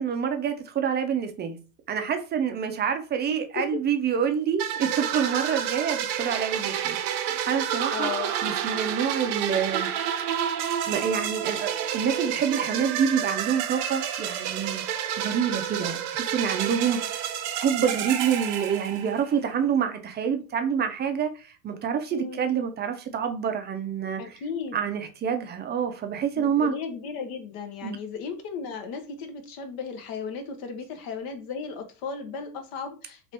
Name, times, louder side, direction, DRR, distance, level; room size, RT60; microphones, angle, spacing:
voice 1, 0.0-1.6 1.9-8.1 8.4-9.9 10.9-14.8 15.2-24.4 24.7-26.7 27.8-28.0, right 7 dB, 20° right, 0.5 m, -27 dB
voice 2, 3.3-3.8 4.7-4.8 7.9-8.3 22.1-22.4 24.2-24.8 26.3-33.3, left 5 dB, 50° left, 0.8 m, -35 dB
sound 1, 4.6-19.4, right 9 dB, 60° right, 0.7 m, -29 dB
2.8 x 2.6 x 3.3 m
supercardioid pair, 110°, 47 cm